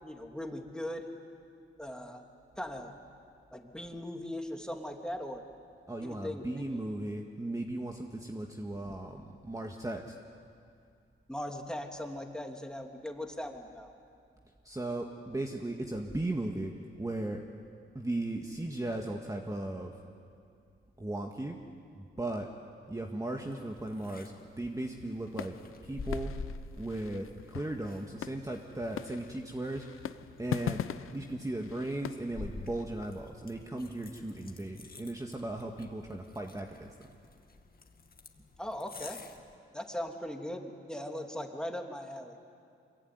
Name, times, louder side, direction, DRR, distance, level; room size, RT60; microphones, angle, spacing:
voice 1, 0.0-1.1 1.8-2.2 2.6-2.9 3.5-5.4 6.0-6.8 11.3-13.9 38.6-39.2 39.7-42.4, left 1 dB, 5° left, 3 dB, 2.9 m, -39 dB
voice 2, 5.9-10.2 14.6-16.7 17.0-17.4 18.0-19.9 21.0-21.6 21.9-22.5 22.9-24.3 24.6-25.5 25.8-26.3 26.8-29.9 30.4-30.8 31.1-36.9, right 1 dB, 15° right, 2 dB, 1.8 m, -36 dB
sound 1, 23.4-39.6, left 3 dB, 45° left, 2.1 m, -48 dB
sound 2, 24.9-32.8, left 9 dB, 80° left, 0.7 m, -42 dB
25.5 x 22.5 x 9.6 m, 2.4 s
cardioid pair, 75°, 21 cm